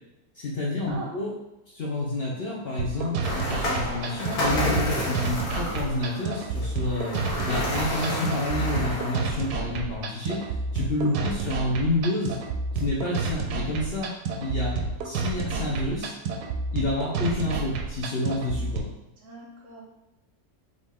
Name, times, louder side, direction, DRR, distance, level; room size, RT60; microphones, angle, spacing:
voice 1, 0.3-1.3 1.7-7.2 7.5-10.4 10.7-12.4 12.7-14.1 14.4-14.8 15.0-16.1 16.7-18.9, left 2 dB, 50° left, -4 dB, 0.8 m, -29 dB
voice 2, 0.9-1.2 11.1-11.3 19.2-19.8, right 3 dB, 60° right, -2 dB, 0.9 m, -41 dB
sound 1, 2.8-18.8, right 4 dB, 85° right, 1.2 m, -30 dB
sound 2, 3.2-9.5, left 1 dB, 75° left, 1.6 m, -30 dB
4.1 x 3.4 x 3.5 m, 0.94 s
omnidirectional pair, 1.7 m